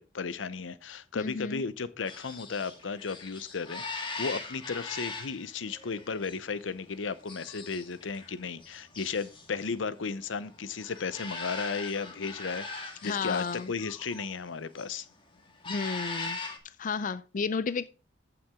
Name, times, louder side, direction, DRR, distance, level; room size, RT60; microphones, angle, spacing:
voice 1, 0.0-15.1, left 5 dB, 85° left, 0.7 m, -35 dB
voice 2, 1.1-1.6 13.0-13.7 15.7-16.4 16.8-17.9, left 5 dB, 45° left, 0.4 m, -32 dB
sound 1, 2.0-14.4 14.6-15.1 15.5-16.6, left 3 dB, 25° left, 2.0 m, -41 dB
14.5 x 5.9 x 3.6 m
head